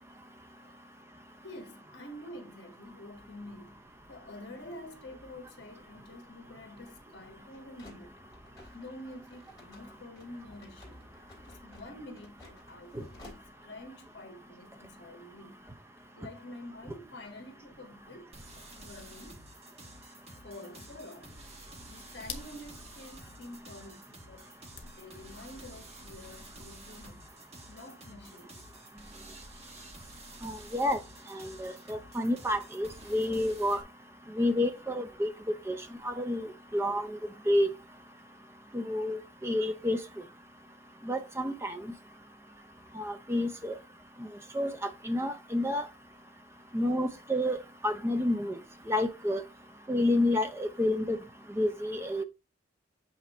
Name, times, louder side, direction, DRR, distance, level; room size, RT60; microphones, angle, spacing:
voice 1, 1.4-8.2 8.7-11.0 11.4-15.6 16.2-19.4 20.4-21.4 21.9-24.5 24.9-27.2 27.7-28.6 29.9-30.5 31.6-32.3 46.6-46.7, left 1 dB, 60° left, 1.5 m, -48 dB
sound 1, 3.1-13.9, left 1 dB, 20° left, 2.5 m, -56 dB
sound 2, 18.3-33.8, right 2 dB, 30° right, 1.2 m, -51 dB
sound 3, 22.2-23.7 24.7-26.9, left 6 dB, 80° left, 1.3 m, -47 dB
voice 2, 30.4-31.0 31.3-33.8 34.4-35.3 35.7-35.8 36.0-37.2 37.5-37.7 38.7-40.0 41.1-41.8 43.0-43.7 44.5-45.8 46.7-47.6 47.8-48.6 48.9-49.4 49.9-51.2 51.5-52.2, left 1 dB, 15° right, 0.5 m, -29 dB
8.2 x 2.8 x 4.2 m
head